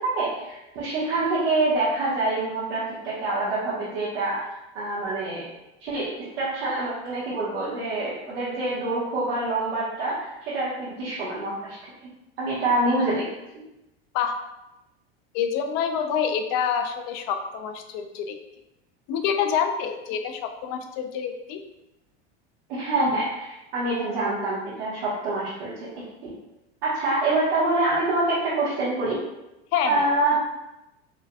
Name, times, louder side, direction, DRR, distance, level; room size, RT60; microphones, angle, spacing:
voice 1, 0.0-4.5 4.7-5.5 5.8-11.8 12.4-13.3 22.7-23.3 23.7-25.9 26.2-26.3 26.8-29.2 29.9-30.3, right 2 dB, 80° right, -9 dB, 1.2 m, -26 dB
voice 2, 15.3-18.4 19.1-21.6 29.7-30.1, left 7 dB, 55° left, 7 dB, 0.6 m, -27 dB
4.4 x 2.7 x 2.2 m, 0.94 s
hypercardioid pair, 100°, 30 cm